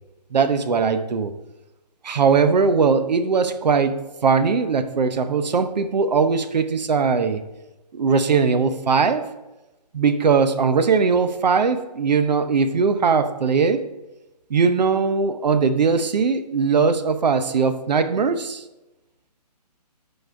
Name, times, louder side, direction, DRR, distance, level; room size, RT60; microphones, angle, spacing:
voice 1, 0.3-1.3 2.0-7.4 7.9-9.3 9.9-13.8 14.5-18.6, right 5 dB, 90° right, 9 dB, 0.7 m, -20 dB
10.0 x 4.1 x 4.6 m, 1.0 s
hypercardioid pair, 170°, 21 cm